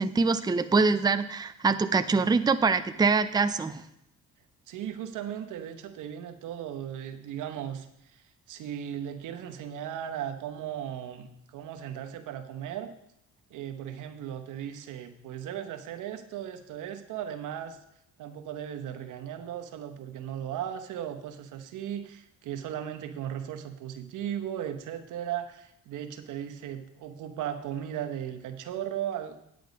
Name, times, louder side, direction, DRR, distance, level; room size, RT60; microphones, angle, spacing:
voice 1, 0.0-3.8, right 4 dB, 15° right, 11 dB, 0.5 m, -24 dB
voice 2, 4.7-12.9 13.5-17.8 18.2-29.4, right 10 dB, 85° right, 7 dB, 1.0 m, -37 dB
9.4 x 7.8 x 5.2 m, 0.78 s
cardioid pair, 90°, 30 cm